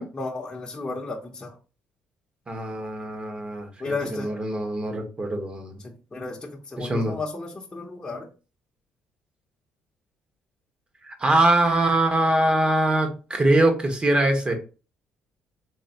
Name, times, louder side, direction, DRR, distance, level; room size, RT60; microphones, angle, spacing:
voice 1, 0.1-1.6 3.8-4.3 5.8-8.3, left 3 dB, 25° left, -3 dB, 0.9 m, -33 dB
voice 2, 2.5-5.8 6.8-7.1 11.0-14.5, right 1 dB, 30° right, 4 dB, 1.3 m, -23 dB
4.0 x 3.0 x 2.9 m, 0.33 s
supercardioid pair, 75°, 3 cm